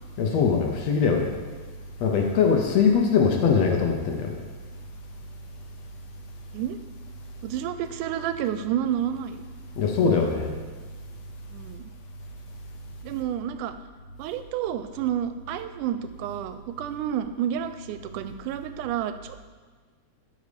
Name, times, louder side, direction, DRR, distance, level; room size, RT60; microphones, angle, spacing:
voice 1, 0.2-1.3 2.0-4.4 9.8-10.5, left 6 dB, 65° left, 1 dB, 2.0 m, -22 dB
voice 2, 7.4-9.4 11.5-11.8 13.0-13.7 14.2-19.5, right 10 dB, 85° right, 10 dB, 2.1 m, -30 dB
12.0 x 5.3 x 5.1 m, 1.4 s
omnidirectional pair, 3.6 m